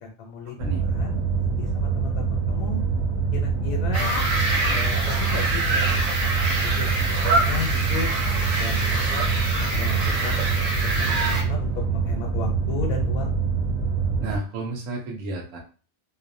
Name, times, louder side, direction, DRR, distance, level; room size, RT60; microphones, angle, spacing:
voice 1, 0.0-2.8 3.3-4.2 4.7-6.3 6.6-8.1 8.6-10.4 10.8-13.4, left 4 dB, 85° left, 1 dB, 1.0 m, -35 dB
sound 1, 0.6-14.4, right 5 dB, 15° left, 0.6 m, -25 dB
sound 2, 3.9-11.4, right 2 dB, 45° right, 0.5 m, -26 dB
sound 3, 4.0-4.8 5.1-5.4 5.9-6.2 6.5-6.8 7.4-7.6 8.4-8.6 9.5-9.7, left 6 dB, 60° left, 0.6 m, -35 dB
voice 2, 14.2-15.6, right 2 dB, 75° right, 0 dB, 0.9 m, -32 dB
2.6 x 2.0 x 2.5 m, 0.36 s
omnidirectional pair, 1.4 m